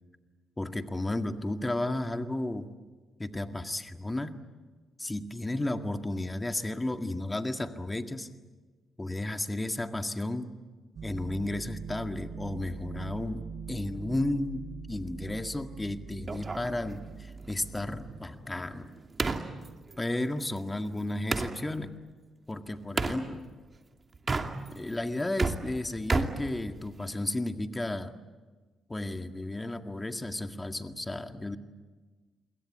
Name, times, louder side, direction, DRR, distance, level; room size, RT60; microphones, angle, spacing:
voice 1, 0.6-2.7 3.2-4.4 5.0-8.3 9.0-10.5 11.0-18.9 20.0-21.9 22.5-23.5 24.7-28.1 28.9-31.6, left 1 dB, 20° left, 7 dB, 1.9 m, -33 dB
sound 1, 11.0-18.1, right 5 dB, 60° right, 2.3 m, -43 dB
sound 2, 16.3-21.6 23.0-23.2 24.1-24.9 25.2-27.2, right 4 dB, 35° right, 2.6 m, -33 dB
29.0 x 22.5 x 8.7 m, 1.3 s
hypercardioid pair, 50°, 0 cm